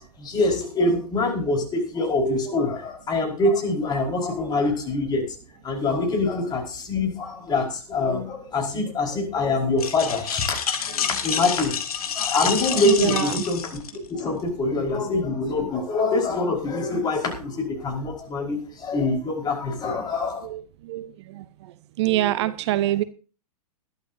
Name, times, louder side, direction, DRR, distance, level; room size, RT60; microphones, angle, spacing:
voice 1, 0.0-5.2 5.6-10.5 10.8-11.7 12.1-13.8 14.1-20.5, left 2 dB, 20° left, 1 dB, 5.0 m, -25 dB
sound 1, 9.8-14.2, left 7 dB, 65° left, 2.5 m, -28 dB
voice 2, 12.8-13.5 14.2-14.3 20.4-21.4 22.0-23.0, right 15 dB, 45° right, 16 dB, 0.7 m, -25 dB
21.0 x 12.0 x 2.8 m, 0.37 s
figure-of-eight pair, 110°, 20 cm